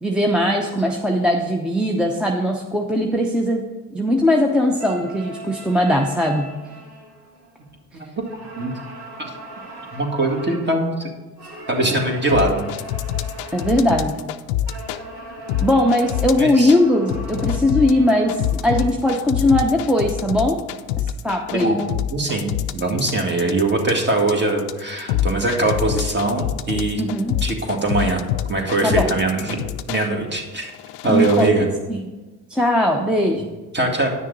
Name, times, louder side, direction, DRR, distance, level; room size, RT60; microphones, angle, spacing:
voice 1, 0.0-3.6 3.9-6.5 13.5-14.3 15.6-20.6 21.0-21.8 27.0-27.4 28.8-29.1 31.0-32.1 32.5-33.5, left 1 dB, ahead, 1 dB, 0.8 m, -20 dB
sound 1, 4.7-7.8 8.2-10.8 11.4-14.0 14.7-18.9, right 1 dB, 75° right, 2.2 m, -39 dB
voice 2, 7.9-8.2 8.6-8.7 9.9-11.1 11.7-12.7 16.3-16.7 21.5-27.0 27.4-28.2 28.5-29.6 29.9-30.7 31.0-31.7 33.7-34.1, right 2 dB, 25° right, 1 dB, 2.0 m, -21 dB
sound 2, 12.3-15.0 15.5-16.8 17.1-30.1 30.6-31.5, left 11 dB, 80° left, 0.5 m, -26 dB
9.7 x 6.3 x 4.0 m, 1.2 s
supercardioid pair, 75°, 41 cm